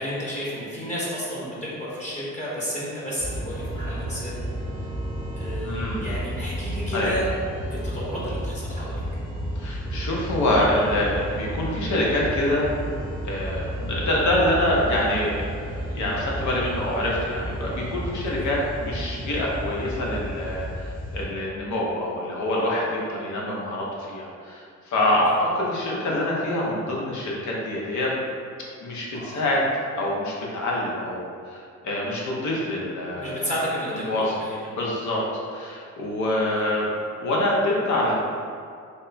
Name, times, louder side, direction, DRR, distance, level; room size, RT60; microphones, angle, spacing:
voice 1, 0.0-4.4 4.8-4.9 5.3-7.3 7.5-9.0 18.4-18.5 29.1-29.5 33.1-34.1 34.4-34.7 36.6-36.7, equal, 25° left, -7 dB, 1.0 m, -32 dB
sound 1, 3.2-21.2, equal, 20° right, 0.8 m, -32 dB
voice 2, 5.6-6.0 6.9-7.2 9.6-12.7 13.2-28.2 28.8-29.6 30.0-33.5 34.1-34.3 34.7-35.2 35.5-36.9 37.2-38.2, left 1 dB, 70° left, -4 dB, 0.9 m, -25 dB
3.4 x 2.2 x 4.0 m, 2.3 s
cardioid pair, 90°, 30 cm